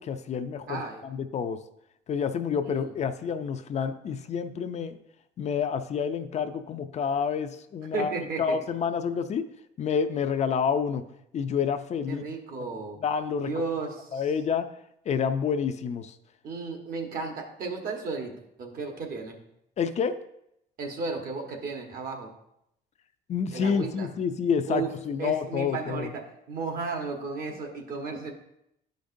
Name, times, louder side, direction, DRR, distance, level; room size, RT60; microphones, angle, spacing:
voice 1, 0.0-1.6 2.1-5.0 5.4-9.5 9.8-11.0 11.3-12.3 13.0-13.5 14.1-14.7 15.1-16.2 19.8-20.2 23.3-26.1, left 6 dB, 40° left, 9 dB, 0.5 m, -28 dB
voice 2, 0.7-1.0 2.6-2.9 7.9-8.6 12.1-13.0 13.4-14.2 16.4-19.4 20.8-22.3 23.5-24.1 24.7-28.3, right 4 dB, 60° right, 3 dB, 1.4 m, -34 dB
11.5 x 5.2 x 2.6 m, 0.79 s
cardioid pair, 110°, 17 cm